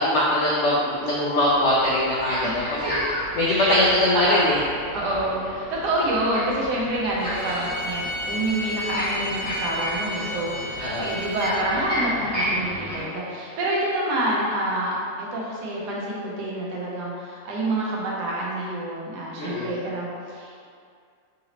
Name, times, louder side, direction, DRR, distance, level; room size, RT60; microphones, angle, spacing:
voice 1, 0.0-2.9 3.4-4.6 10.8-11.1 19.4-19.7, left 1 dB, 90° left, -6 dB, 0.6 m, -22 dB
sound 1, 1.4-13.0, equal, 10° left, 0.6 m, -33 dB
voice 2, 3.5-4.5 4.9-20.6, right 1 dB, 80° right, -4 dB, 1.3 m, -27 dB
Bowed string instrument, 7.2-11.6, left 1 dB, 50° right, 1.0 m, -33 dB
3.8 x 2.9 x 2.8 m, 2.2 s
omnidirectional pair, 1.8 m